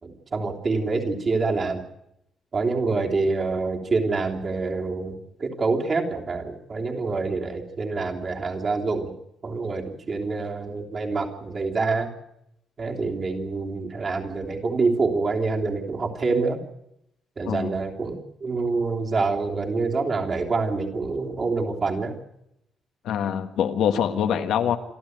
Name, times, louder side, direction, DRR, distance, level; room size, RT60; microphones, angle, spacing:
voice 1, 0.0-1.8 2.5-9.1 9.4-12.1 12.8-16.6 17.4-22.2, right 3 dB, 35° right, 1 dB, 3.1 m, -26 dB
voice 2, 23.0-24.8, left 9 dB, 85° left, 6 dB, 1.8 m, -24 dB
27.0 x 13.0 x 9.4 m, 0.83 s
cardioid pair, 140°, 0 cm